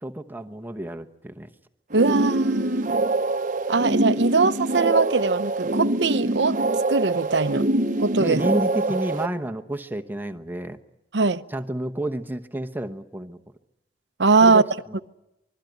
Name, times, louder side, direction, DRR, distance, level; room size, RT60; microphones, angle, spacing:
voice 1, 0.0-1.5 8.2-10.8 11.5-13.4 14.4-15.0, right 1 dB, 10° right, 1.0 m, -30 dB
sound 1, 1.9-9.3, right 2 dB, 45° right, 1.0 m, -24 dB
voice 2, 1.9-2.9 3.7-6.6 6.9-7.7 8.0-8.4 11.1-11.4 14.2-14.6, right 4 dB, 75° right, 0.9 m, -21 dB
25.5 x 21.0 x 9.3 m
head